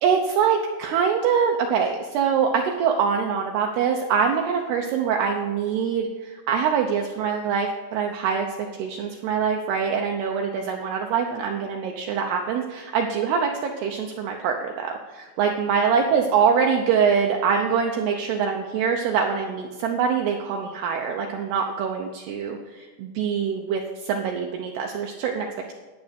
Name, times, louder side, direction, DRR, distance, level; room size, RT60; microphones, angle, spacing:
voice 1, 0.0-6.1 6.5-8.5 8.8-14.9 15.4-22.6 23.0-23.8 24.1-25.7, right 6 dB, 90° right, 2 dB, 2.3 m, -24 dB
11.5 x 9.1 x 5.2 m, 1.3 s
omnidirectional pair, 5.8 m